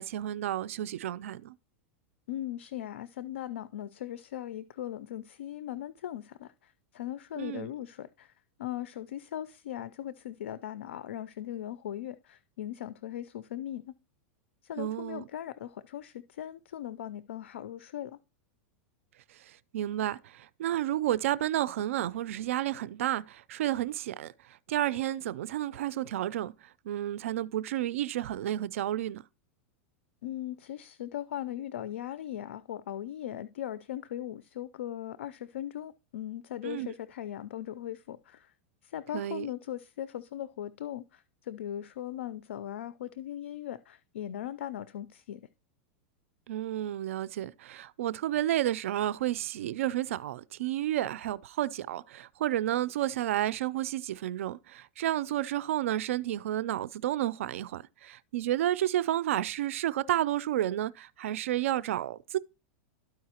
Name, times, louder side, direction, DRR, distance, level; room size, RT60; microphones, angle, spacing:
voice 1, 0.0-1.5 7.4-7.7 14.8-15.2 19.5-24.3 24.7-26.5 26.8-29.2 36.6-36.9 39.1-39.5 46.5-62.4, right 13 dB, 80° right, 0.4 m, -31 dB
voice 2, 2.3-8.3 8.6-13.9 14.6-18.2 30.2-38.5 38.8-45.4, left 11 dB, 90° left, 0.4 m, -39 dB
12.5 x 4.7 x 2.9 m
supercardioid pair, 135°, 7 cm